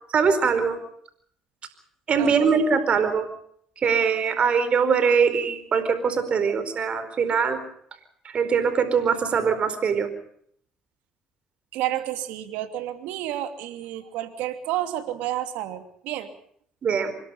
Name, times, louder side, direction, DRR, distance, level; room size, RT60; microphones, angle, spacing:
voice 1, 0.1-0.8 2.1-3.3 3.8-7.6 8.3-10.1 16.8-17.1, right 6 dB, 45° right, 11 dB, 4.5 m, -22 dB
voice 2, 2.2-2.5 11.7-16.3, right 13 dB, 80° right, 8 dB, 2.8 m, -30 dB
25.5 x 21.5 x 5.7 m, 0.64 s
supercardioid pair, 80°, 3 cm